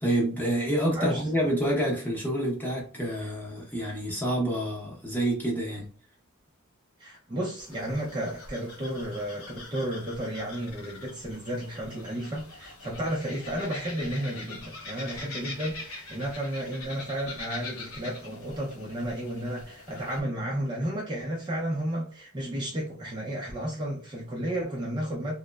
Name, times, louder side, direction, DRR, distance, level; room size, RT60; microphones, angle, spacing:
voice 1, 0.0-5.9, right 1 dB, 10° left, 0.8 m, -28 dB
voice 2, 0.9-1.5 7.0-25.3, right 1 dB, 20° right, 0.5 m, -33 dB
sound 1, 7.6-20.2, left 3 dB, 90° left, 0.8 m, -43 dB
3.0 x 2.0 x 2.2 m
head